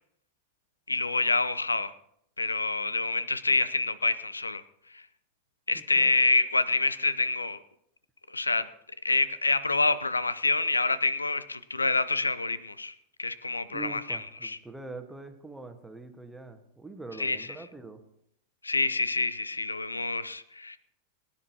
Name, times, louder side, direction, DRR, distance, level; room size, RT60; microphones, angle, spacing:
voice 1, 0.9-1.9 2.4-4.6 4.9-5.0 5.7-7.6 8.3-8.7 9.0-12.9 13.2-14.6 17.2-17.5 18.6-20.8, left 3 dB, 80° left, 17 dB, 0.6 m, -27 dB
voice 2, 5.7-6.1 13.7-18.0, right 3 dB, 5° right, 6 dB, 1.4 m, -43 dB
22.5 x 10.0 x 2.8 m, 0.74 s
figure-of-eight pair, 90°, 0 cm